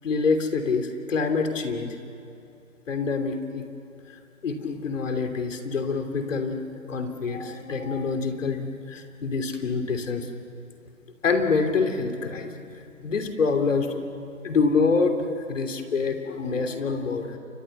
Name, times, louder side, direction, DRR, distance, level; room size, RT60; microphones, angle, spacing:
voice 1, 0.0-2.0 2.9-3.6 4.4-6.6 6.9-10.3 11.2-12.7 13.0-14.0 14.4-15.2 15.5-17.4, left 4 dB, 60° left, 6 dB, 3.2 m, -26 dB
29.5 x 24.0 x 6.8 m, 2.7 s
figure-of-eight pair, 145°, 42 cm